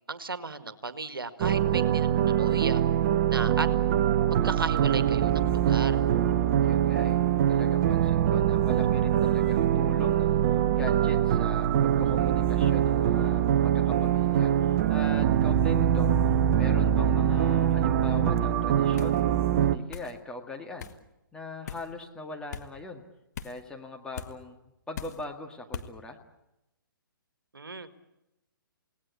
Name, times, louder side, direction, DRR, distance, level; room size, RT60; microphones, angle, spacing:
voice 1, 0.1-2.8 3.3-3.7 4.3-6.0 27.5-28.0, right 3 dB, 75° right, 11 dB, 1.9 m, -35 dB
sound 1, 1.4-19.8, right 10 dB, 35° right, 1.0 m, -23 dB
voice 2, 6.6-19.2 19.6-20.9 21.3-23.0 23.4-24.6 24.9-26.2, left 2 dB, 5° left, 1 dB, 2.0 m, -41 dB
sound 2, 19.0-19.2 19.9-20.1 20.8-21.0 21.7-21.9 22.5-22.7 23.3-23.6 24.1-24.3 24.9-25.2 25.7-25.9, left 7 dB, 50° left, 1.7 m, -39 dB
29.0 x 18.5 x 8.4 m, 0.91 s
figure-of-eight pair, 130°, 12 cm